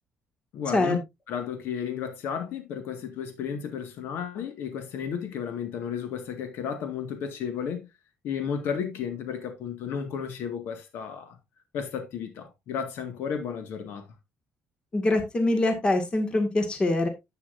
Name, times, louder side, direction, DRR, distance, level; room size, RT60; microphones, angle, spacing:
voice 1, 0.5-1.0 1.3-7.9 8.2-11.4 11.7-14.0, left 7 dB, 75° left, 1.8 m, -33 dB
voice 2, 14.9-17.1, left 2 dB, 25° left, 2.0 m, -24 dB
10.0 x 8.6 x 2.6 m
cardioid pair, 135°, 4 cm